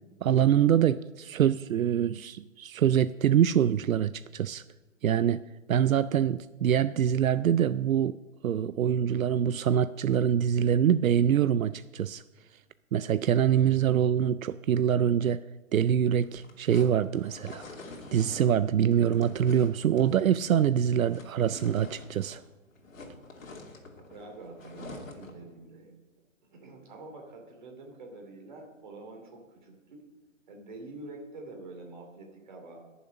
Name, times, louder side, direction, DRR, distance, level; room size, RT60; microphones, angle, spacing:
voice 1, 0.2-4.6 5.0-5.4 5.7-8.2 8.4-12.2 12.9-15.4 15.7-17.6 18.1-22.4, right 9 dB, 85° right, 14 dB, 0.5 m, -25 dB
sound 1, 16.1-22.5 22.7-25.4, left 2 dB, 75° left, 2.9 m, -47 dB
voice 2, 24.1-25.9 26.5-30.0 30.5-32.8, right 2 dB, 35° right, 1 dB, 2.7 m, -46 dB
20.0 x 7.2 x 5.2 m, 1.2 s
hypercardioid pair, 170°, 40 cm